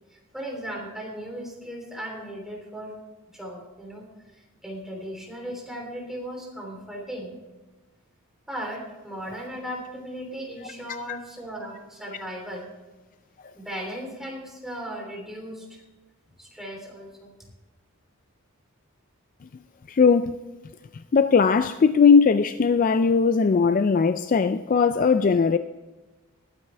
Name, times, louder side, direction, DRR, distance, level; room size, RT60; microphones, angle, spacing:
voice 1, 0.1-3.0 3.3-4.0 4.3-7.3 8.5-12.6 13.5-15.8 16.4-17.3, equal, ahead, 3.3 m, -37 dB
voice 2, 19.9-20.4 21.1-25.6, left 5 dB, 35° left, 0.3 m, -19 dB
20.5 x 9.0 x 3.3 m
head